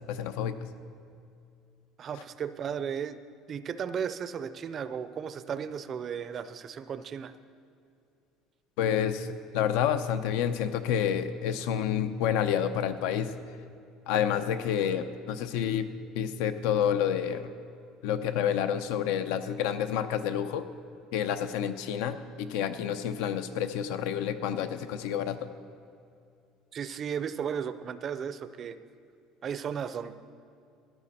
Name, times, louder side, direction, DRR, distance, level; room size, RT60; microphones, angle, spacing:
voice 1, 0.1-0.5 8.8-13.3 14.1-15.9 16.1-17.5 18.0-20.7 21.1-25.5, left 9 dB, 85° left, 10 dB, 0.7 m, -29 dB
voice 2, 2.0-3.2 3.5-7.3 26.7-28.8 29.4-30.1, right 7 dB, 30° right, 13 dB, 0.4 m, -35 dB
13.5 x 11.0 x 4.2 m, 2.5 s
cardioid pair, 170°, 0 cm